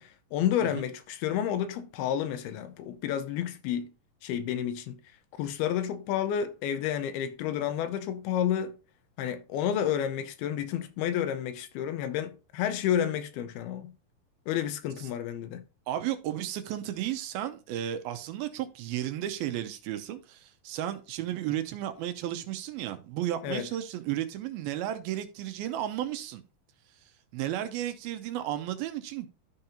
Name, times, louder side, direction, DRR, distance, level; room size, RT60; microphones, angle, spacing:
voice 1, 0.0-3.9 4.2-5.0 5.4-8.8 9.2-13.9 14.5-15.6 23.4-23.7, left 10 dB, 80° left, 2.7 m, -30 dB
voice 2, 15.9-26.4 27.3-29.3, right 12 dB, 80° right, 2.5 m, -33 dB
13.0 x 5.2 x 2.9 m
omnidirectional pair, 4.5 m